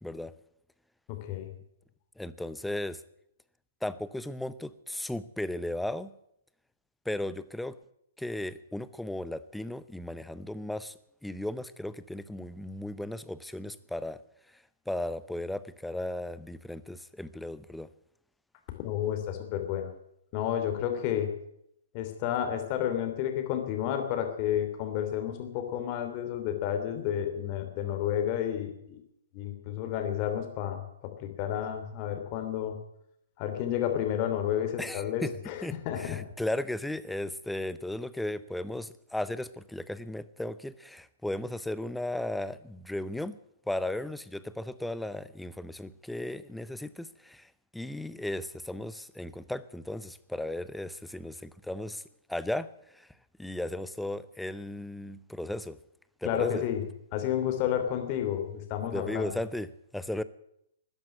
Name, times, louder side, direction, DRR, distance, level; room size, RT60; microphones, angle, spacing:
voice 1, 0.0-0.3 2.2-3.0 3.8-6.1 7.1-7.8 8.2-10.9 11.2-14.2 14.9-17.9 34.8-35.3 35.6-43.4 43.7-52.0 52.3-53.1 53.4-55.8 56.2-56.6 58.9-59.7 59.9-60.2, left 1 dB, 5° left, 15 dB, 0.7 m, -35 dB
voice 2, 1.1-1.5 18.8-19.9 20.3-21.3 21.9-29.0 29.3-32.8 33.4-36.2 56.2-56.8 57.1-59.3, left 10 dB, 40° left, 6 dB, 3.0 m, -31 dB
13.5 x 10.0 x 9.9 m, 0.75 s
figure-of-eight pair, 120°, 0 cm